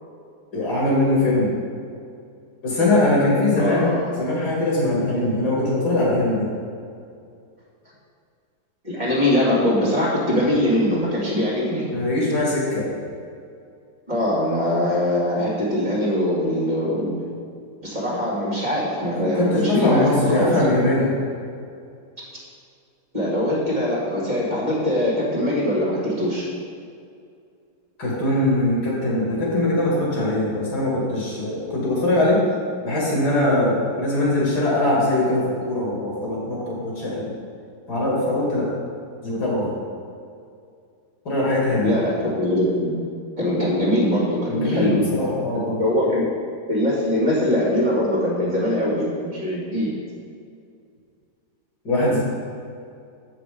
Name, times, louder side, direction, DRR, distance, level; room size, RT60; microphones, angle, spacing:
voice 1, 0.5-1.5 2.6-3.9 4.2-6.5 11.9-12.9 19.1-21.1 28.0-32.4 32.8-37.3 37.9-38.7 39.2-39.7 41.2-42.0 44.5-45.8 51.8-52.2, left 1 dB, 90° left, -5 dB, 2.9 m, -21 dB
voice 2, 3.6-4.1 8.8-11.8 14.1-17.2 17.8-20.7 23.1-26.5 41.8-43.0 43.4-45.0 45.8-46.3 46.7-49.9, left 1 dB, 25° right, -7 dB, 2.2 m, -22 dB
7.7 x 5.9 x 5.1 m, 2.3 s
omnidirectional pair, 1.7 m